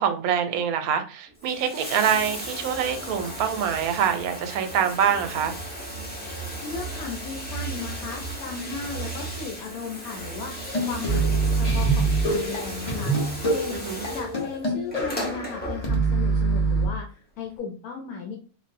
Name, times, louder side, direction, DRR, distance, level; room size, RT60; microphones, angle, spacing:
voice 1, 0.0-5.6 13.7-14.0, right 8 dB, 90° right, 7 dB, 1.1 m, -25 dB
Bathtub (filling or washing), 1.3-16.3 17.4-17.5, right 1 dB, 10° left, 0.4 m, -35 dB
voice 2, 6.6-18.4, left 5 dB, 85° left, 1 dB, 1.1 m, -36 dB
sound 1, 10.5-16.9, right 3 dB, 35° left, 0.8 m, -25 dB
3.8 x 2.0 x 2.5 m, 0.37 s
omnidirectional pair, 1.5 m